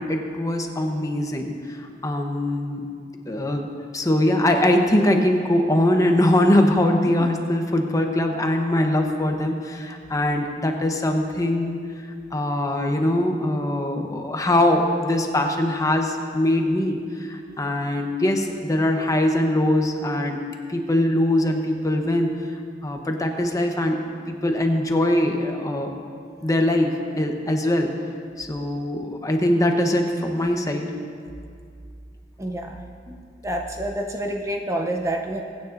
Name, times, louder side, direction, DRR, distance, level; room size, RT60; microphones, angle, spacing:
voice 1, 0.0-2.8 3.3-3.7 3.9-11.8 12.3-20.4 20.7-22.4 22.8-24.0 24.3-26.0 26.4-27.9 28.4-30.9, left 1 dB, 20° left, 3 dB, 0.9 m, -22 dB
voice 2, 32.4-32.8 33.1-33.2 33.4-35.4, right 1 dB, 15° right, 2 dB, 0.6 m, -28 dB
22.5 x 9.6 x 2.6 m, 2.2 s
head